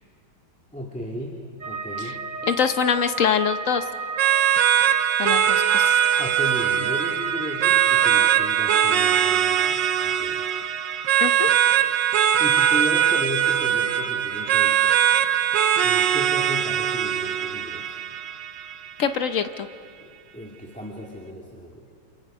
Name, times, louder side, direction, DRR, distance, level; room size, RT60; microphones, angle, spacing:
voice 1, 0.7-2.2 6.2-10.5 12.4-14.8 15.8-18.0 20.0-21.9, equal, 5° left, -2 dB, 2.0 m, -34 dB
sound 1, 1.6-18.7 19.0-19.7, right 4 dB, 35° right, 0.9 m, -36 dB
voice 2, 2.4-3.8 5.2-6.0 11.2-11.5 19.0-19.7, left 7 dB, 55° left, 9 dB, 0.9 m, -24 dB
sound 2, 4.2-19.1, right 10 dB, 65° right, 1.3 m, -21 dB
29.5 x 27.5 x 5.5 m, 2.3 s
omnidirectional pair, 2.2 m